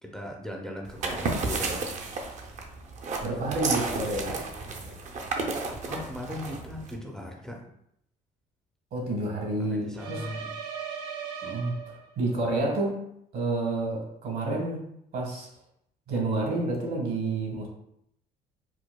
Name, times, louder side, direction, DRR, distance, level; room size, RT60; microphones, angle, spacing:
voice 1, 0.0-1.8 5.7-7.6 9.6-10.5, left 1 dB, 5° left, 0 dB, 0.5 m, -38 dB
sound 1, 0.9-6.9, right 3 dB, 45° right, 0.5 m, -32 dB
voice 2, 3.2-5.0 8.9-10.2 11.4-11.8 12.2-13.0 13.3-14.8 15.1-15.5 16.1-17.7, right 2 dB, 65° right, -1 dB, 1.3 m, -29 dB
sound 2, 10.0-12.3, right 7 dB, 85° right, 0.7 m, -38 dB
4.7 x 2.2 x 2.2 m, 0.74 s
cardioid pair, 110°, 17 cm